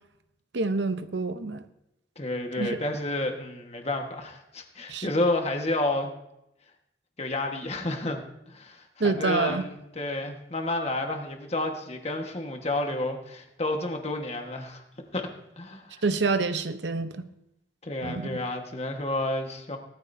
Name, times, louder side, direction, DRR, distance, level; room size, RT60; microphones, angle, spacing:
voice 1, 0.5-1.7 2.6-2.8 4.9-5.1 9.0-9.7 16.0-17.3 18.0-18.4, right 3 dB, 70° right, 10 dB, 0.9 m, -27 dB
voice 2, 2.2-6.1 7.2-8.2 8.5-14.8 15.1-15.3 15.6-16.0 17.8-19.8, left 2 dB, 35° left, 3 dB, 1.5 m, -30 dB
19.0 x 13.0 x 2.7 m, 0.84 s
head